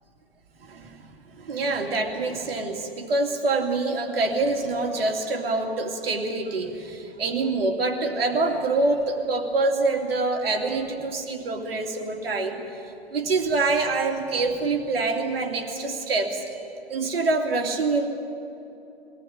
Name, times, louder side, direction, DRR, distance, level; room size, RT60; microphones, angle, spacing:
voice 1, 0.6-12.8 13.1-16.6 16.9-18.1, right 3 dB, 65° right, 3 dB, 2.7 m, -26 dB
21.5 x 15.5 x 10.0 m, 2.9 s
figure-of-eight pair, 100°, 31 cm